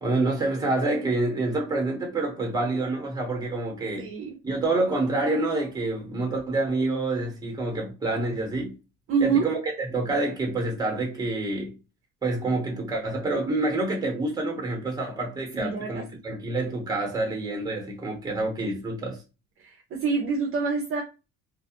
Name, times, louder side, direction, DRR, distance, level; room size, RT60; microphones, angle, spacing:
voice 1, 0.0-4.1 4.4-8.7 9.2-11.7 12.2-19.2, right 2 dB, 15° right, 0.9 m, -27 dB
voice 2, 4.0-4.3 9.1-9.4 15.5-16.0 19.6-21.0, right 5 dB, 45° right, 0.5 m, -26 dB
2.4 x 2.2 x 2.8 m
cardioid pair, 130°, 29 cm